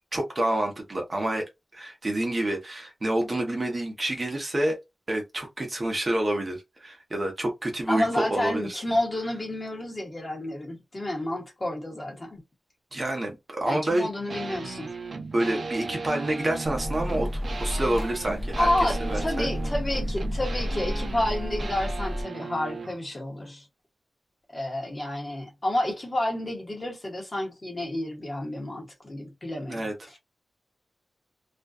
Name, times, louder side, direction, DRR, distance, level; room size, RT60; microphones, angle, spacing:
voice 1, 0.1-1.5 1.7-4.8 5.1-8.8 12.9-14.1 15.3-18.7 19.0-19.5 29.7-29.9, right 1 dB, 30° right, 0.8 m, -28 dB
voice 2, 7.9-12.4 13.6-14.9 18.6-23.7 24.5-30.2, left 1 dB, 30° left, 1.1 m, -30 dB
sound 1, 14.3-23.0, right 4 dB, 55° right, 0.5 m, -36 dB
sound 2, 16.6-22.2, equal, 5° left, 0.6 m, -31 dB
2.5 x 2.2 x 2.2 m
wide cardioid pair, 135°, 0 cm